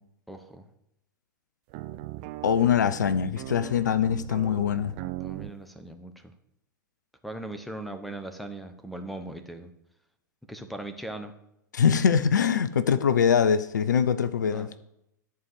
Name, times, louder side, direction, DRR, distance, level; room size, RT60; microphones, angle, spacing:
voice 1, 0.3-0.7 5.0-6.3 7.2-9.7 10.5-11.3 14.5-14.8, right 1 dB, ahead, 7 dB, 0.9 m, -39 dB
sound 1, 1.7-5.5, right 16 dB, 40° right, 0.5 m, -39 dB
voice 2, 2.4-4.9 11.7-14.8, left 7 dB, 65° left, 14 dB, 0.6 m, -23 dB
11.0 x 4.7 x 7.8 m, 0.80 s
figure-of-eight pair, 100°, 10 cm